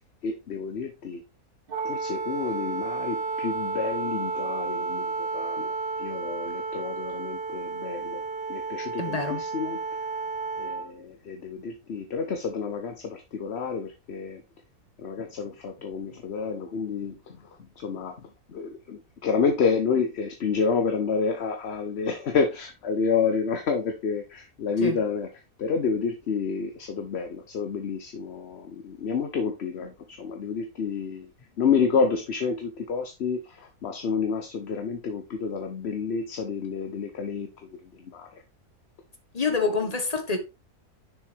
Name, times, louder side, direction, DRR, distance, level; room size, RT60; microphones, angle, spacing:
voice 1, 0.2-1.2 1.8-8.2 8.5-9.8 10.6-14.4 15.0-17.5 17.8-31.3 31.6-38.4 39.6-39.9, left 5 dB, 50° left, 1.0 m, -29 dB
Wind instrument woodwind instrument, 1.7-10.9, right 4 dB, 45° right, 1.0 m, -32 dB
voice 2, 9.0-9.4 24.8-25.0 39.3-40.4, left 4 dB, 25° left, 1.3 m, -27 dB
6.8 x 6.6 x 3.3 m
omnidirectional pair, 1.6 m